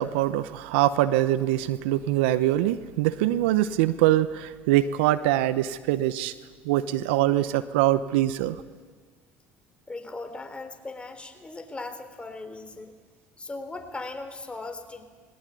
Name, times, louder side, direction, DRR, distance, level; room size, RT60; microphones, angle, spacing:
voice 1, 0.0-6.3 6.6-8.6, right 14 dB, 80° right, 15 dB, 0.8 m, -23 dB
voice 2, 9.9-12.9 13.4-15.0, left 3 dB, 15° left, 7 dB, 3.6 m, -38 dB
20.5 x 19.0 x 9.2 m, 1.5 s
hypercardioid pair, 75°, 6 cm